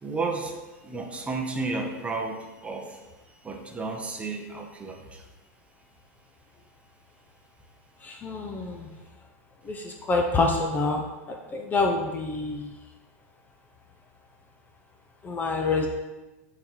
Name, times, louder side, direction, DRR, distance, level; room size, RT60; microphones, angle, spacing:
voice 1, 0.0-5.3, right 3 dB, 15° right, 2 dB, 0.7 m, -33 dB
voice 2, 8.0-8.9 9.7-11.0 11.5-12.7 15.2-15.9, left 3 dB, 20° left, 3 dB, 0.5 m, -26 dB
8.2 x 3.9 x 3.0 m, 1.2 s
supercardioid pair, 135°, 9 cm